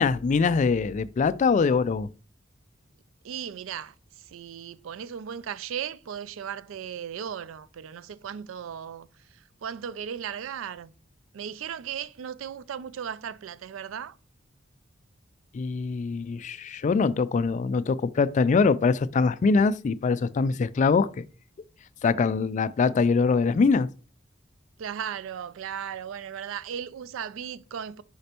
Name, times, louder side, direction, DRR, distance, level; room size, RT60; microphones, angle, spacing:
voice 1, 0.0-2.1 15.5-21.3 22.0-23.9, left 4 dB, 40° left, 0.3 m, -23 dB
voice 2, 3.2-10.9 11.3-14.2 24.8-28.0, right 8 dB, 75° right, 0.4 m, -36 dB
6.5 x 5.1 x 2.9 m
head